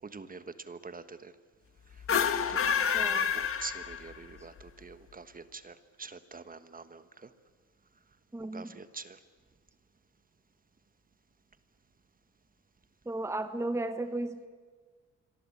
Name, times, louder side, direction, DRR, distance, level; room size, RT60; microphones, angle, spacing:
voice 1, 0.0-1.3 1.9-2.0 2.5-7.3 8.5-9.2, right 4 dB, 30° right, 12 dB, 1.4 m, -46 dB
sound 1, 2.0-4.3, left 7 dB, 45° left, 1.7 m, -28 dB
voice 2, 2.9-3.3 8.3-8.7 13.0-14.5, right 2 dB, 10° right, 10 dB, 1.3 m, -34 dB
26.5 x 23.0 x 8.6 m, 1.5 s
cardioid pair, 90°, 30 cm